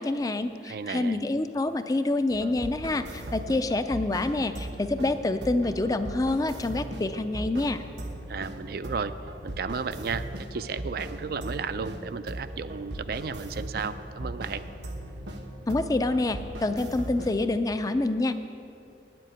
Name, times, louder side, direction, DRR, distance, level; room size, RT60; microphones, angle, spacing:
voice 1, 0.0-7.8 15.7-18.3, left 2 dB, 20° left, 10 dB, 0.4 m, -27 dB
voice 2, 0.6-1.2 8.3-9.1 9.4-14.6, right 5 dB, 60° right, 12 dB, 0.4 m, -33 dB
sound 1, 2.3-17.4, right 1 dB, 80° right, 1.1 m, -38 dB
9.4 x 7.6 x 8.9 m, 2.5 s
head